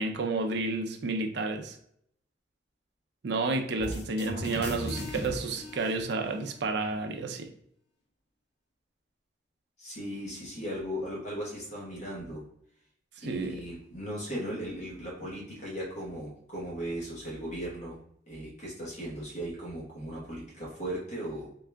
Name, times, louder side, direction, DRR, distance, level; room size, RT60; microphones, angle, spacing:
voice 1, 0.0-1.8 3.2-7.5 13.2-13.6, right 3 dB, 60° right, 0.5 m, -31 dB
sound 1, 3.8-6.7, left 1 dB, 60° left, 0.6 m, -38 dB
voice 2, 9.8-12.5 13.2-18.0 18.3-21.5, equal, 40° left, 1.1 m, -37 dB
3.7 x 2.3 x 3.3 m
head